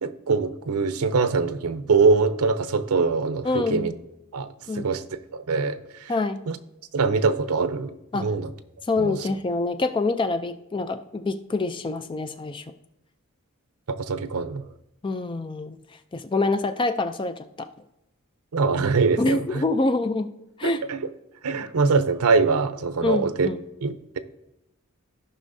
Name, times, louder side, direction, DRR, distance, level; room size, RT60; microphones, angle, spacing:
voice 1, 0.0-3.9 4.3-4.5 4.7-5.0 5.3-6.1 6.5-6.6 6.9-8.5 9.0-9.2 13.9-14.6 18.5-19.6 20.6-21.1 21.4-23.5 23.8-24.2, right 4 dB, 90° right, 12 dB, 0.6 m, -23 dB
voice 2, 3.4-3.9 4.7-4.9 6.1-6.5 8.1-8.3 8.9-12.6 15.0-15.8 16.1-17.7 19.2-20.3 20.6-20.8 23.0-23.6, left 3 dB, 20° left, 10 dB, 0.4 m, -26 dB
15.0 x 5.5 x 2.7 m, 0.87 s
head